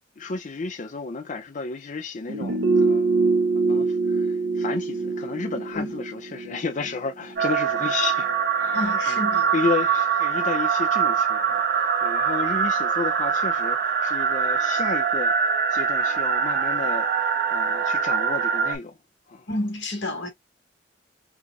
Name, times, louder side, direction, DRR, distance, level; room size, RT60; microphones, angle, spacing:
voice 1, 0.2-3.1 3.5-9.2 9.5-19.0 19.3-19.5, left 4 dB, 45° left, 0.6 m, -32 dB
sound 1, 2.3-7.5 7.8-7.9, right 3 dB, 90° right, 1.0 m, -24 dB
sound 2, 7.4-18.8, right 6 dB, 55° right, 0.8 m, -23 dB
voice 2, 8.7-9.5 19.5-20.3, left 1 dB, 75° left, 2.0 m, -29 dB
5.0 x 2.5 x 2.4 m
head